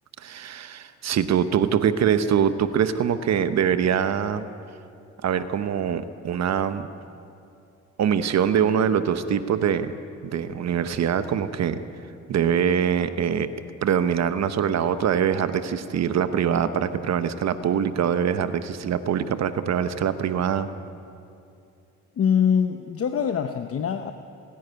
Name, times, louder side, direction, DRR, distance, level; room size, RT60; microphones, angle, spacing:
voice 1, 0.2-4.5 5.2-6.9 8.0-9.9 10.2-11.8 12.3-13.5 13.8-20.7, right 8 dB, 60° right, 11 dB, 1.0 m, -23 dB
voice 2, 22.2-24.1, left 7 dB, 50° left, 7 dB, 0.9 m, -23 dB
27.5 x 10.5 x 9.5 m, 2.6 s
cardioid pair, 90°, 30 cm